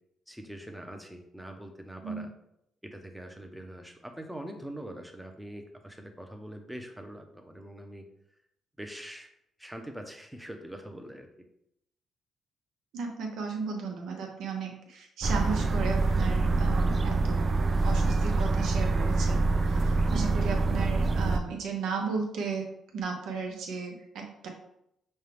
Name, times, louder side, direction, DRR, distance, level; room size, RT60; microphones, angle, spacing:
voice 1, 0.3-2.3 2.8-8.0 8.8-9.3 9.6-11.5, right 1 dB, 5° right, 4 dB, 0.7 m, -43 dB
voice 2, 12.9-17.5 17.8-22.6 22.9-24.5, right 5 dB, 80° right, 2 dB, 0.8 m, -35 dB
sound 1, 15.2-21.4, right 3 dB, 40° right, 0.4 m, -25 dB
5.4 x 2.3 x 3.3 m, 0.77 s
cardioid pair, 90°, 0 cm